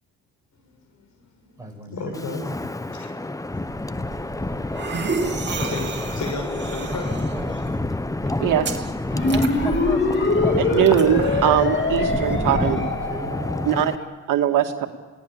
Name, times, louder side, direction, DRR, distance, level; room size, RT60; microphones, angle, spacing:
voice 1, 0.6-2.5 2.9-3.1 3.5-7.2 13.5-13.9, left 4 dB, 60° left, 6 dB, 6.2 m, -36 dB
voice 2, 1.6-2.4 7.1-7.6 11.9-13.5, right 1 dB, 10° right, 1 dB, 7.7 m, -36 dB
Wind, 2.1-14.0, left 2 dB, 10° left, 0.9 m, -28 dB
sound 1, 3.7-13.2, right 4 dB, 35° right, 2.9 m, -33 dB
voice 3, 8.4-8.8 10.6-12.8 13.6-13.9 14.3-14.9, right 10 dB, 75° right, 4 dB, 2.3 m, -21 dB
sound 2, 9.1-13.9, left 3 dB, 35° left, 3.5 m, -24 dB
28.5 x 18.0 x 8.6 m, 1.4 s
cardioid pair, 85°, 32 cm